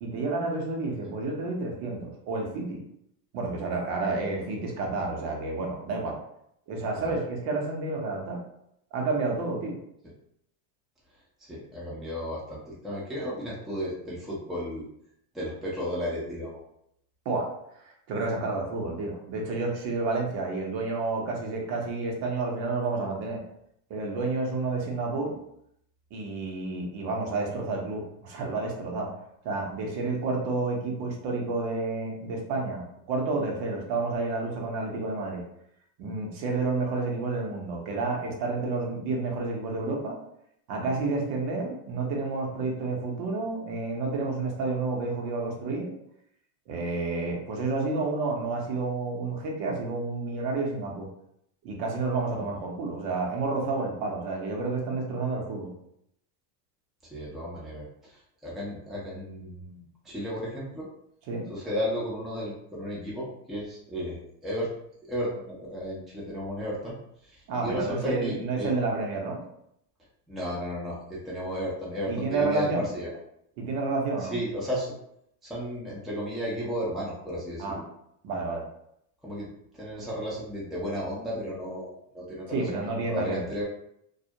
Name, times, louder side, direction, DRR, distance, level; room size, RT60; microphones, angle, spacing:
voice 1, 0.0-2.8 3.3-6.2 6.7-8.4 8.9-9.8 17.2-17.5 18.1-23.4 23.9-25.4 26.1-29.2 29.4-35.4 36.0-40.2 40.7-45.9 46.7-51.1 51.6-55.7 61.3-61.5 67.5-69.4 72.1-72.9 73.6-74.3 77.6-77.8 78.2-78.7 82.5-83.5, right 3 dB, 60° right, 0 dB, 0.9 m, -30 dB
voice 2, 11.5-14.8 15.3-16.6 57.1-58.1 58.4-60.9 61.5-64.7 65.1-66.9 67.2-68.7 70.3-73.1 74.3-74.9 75.5-77.8 79.2-79.5 79.7-82.8 83.1-83.6, equal, ahead, -6 dB, 0.6 m, -34 dB
2.3 x 2.0 x 2.8 m, 0.74 s
supercardioid pair, 115°, 48 cm